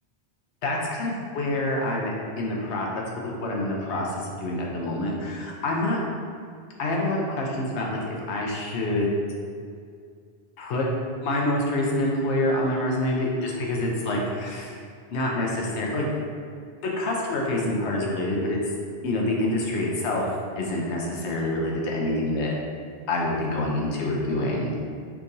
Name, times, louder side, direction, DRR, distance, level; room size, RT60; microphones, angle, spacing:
voice 1, 0.6-6.0 6.8-8.0 8.3-9.1 10.6-10.9 11.2-14.8 15.1-16.0 17.0-18.6 19.0-20.2 20.6-22.5 23.1-24.7, left 1 dB, 80° left, -2 dB, 1.0 m, -26 dB
4.5 x 2.9 x 2.6 m, 2.2 s
omnidirectional pair, 1.1 m